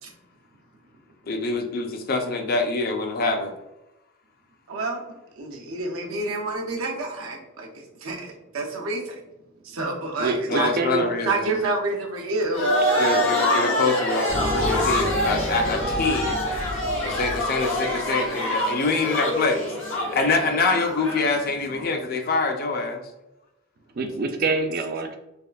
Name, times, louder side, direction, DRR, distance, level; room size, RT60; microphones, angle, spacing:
voice 1, 1.3-3.5 10.5-11.4 13.0-16.4 17.0-19.6 20.1-23.0, left 3 dB, 45° left, 4 dB, 0.4 m, -25 dB
voice 2, 4.7-9.2 9.6-10.7 11.2-13.3, right 2 dB, 85° right, 1 dB, 0.7 m, -29 dB
voice 3, 10.2-11.1 18.9-19.0 24.0-25.2, right 3 dB, 45° right, 6 dB, 0.4 m, -26 dB
sound 1, 12.5-21.3, left 1 dB, 70° left, 1.0 m, -25 dB
sound 2, 14.3-21.8, left 1 dB, 65° right, 1.2 m, -35 dB
3.5 x 2.4 x 2.2 m, 0.93 s
head